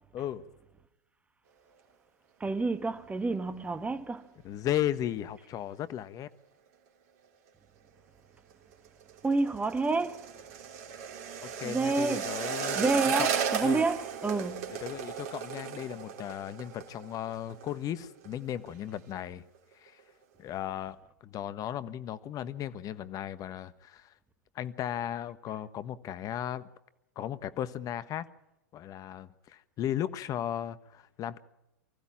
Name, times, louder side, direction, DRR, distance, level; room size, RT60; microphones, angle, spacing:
voice 1, 0.1-0.5 4.4-6.3 11.4-13.3 13.6-13.8 14.8-19.4 19.8-20.0 20.4-21.0 21.2-24.1 24.5-26.7 27.1-28.3 28.7-31.4, left 11 dB, 40° left, 1.4 m, -36 dB
voice 2, 2.4-4.3 9.2-10.2 11.6-12.3 12.8-14.7, right 3 dB, 15° right, 1.7 m, -29 dB
sound 1, 8.7-17.8 18.0-18.4 18.7-19.2 19.5-19.6, right 7 dB, 60° right, 3.2 m, -35 dB
24.5 x 15.5 x 7.5 m
hypercardioid pair, 95°, 10 cm